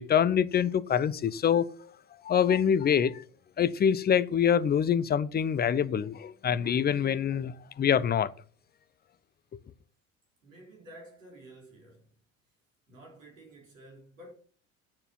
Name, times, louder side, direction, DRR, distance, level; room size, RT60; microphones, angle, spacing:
voice 1, 0.0-1.9 2.2-3.2 3.6-8.3, left 8 dB, 25° left, 0.7 m, -25 dB
voice 2, 10.4-12.1 12.9-14.3, right 1 dB, 80° right, 3.9 m, -51 dB
9.7 x 6.8 x 5.8 m
figure-of-eight pair, 60°, 38 cm